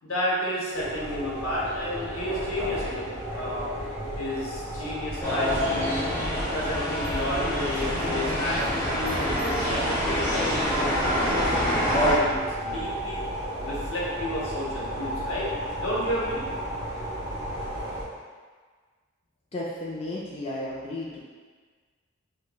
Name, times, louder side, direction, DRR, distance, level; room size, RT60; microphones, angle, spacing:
voice 1, 0.0-3.6 4.2-6.1 6.5-13.2 13.6-15.5 15.8-16.4, left 1 dB, 85° left, -6 dB, 1.0 m, -31 dB
sound 1, 0.7-18.0, right 1 dB, 15° right, 0.7 m, -34 dB
sound 2, 5.2-12.1, equal, 10° left, 0.9 m, -26 dB
voice 2, 19.5-21.2, left 1 dB, 30° left, -6 dB, 0.4 m, -33 dB
4.8 x 2.2 x 2.2 m, 1.5 s
head